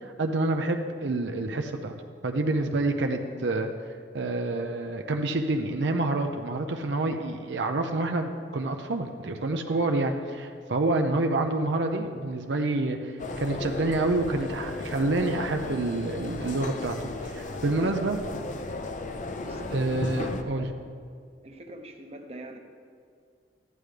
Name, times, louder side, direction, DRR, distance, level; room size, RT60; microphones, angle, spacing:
voice 1, 0.0-1.9 2.2-3.7 4.1-18.2 19.7-20.7, right 2 dB, 70° right, 4 dB, 0.6 m, -28 dB
sound 1, 13.2-20.4, left 2 dB, 45° left, 0.6 m, -35 dB
voice 2, 19.4-20.7 21.4-22.6, right 1 dB, 35° right, 4 dB, 0.9 m, -44 dB
14.0 x 11.0 x 3.3 m, 2.2 s
head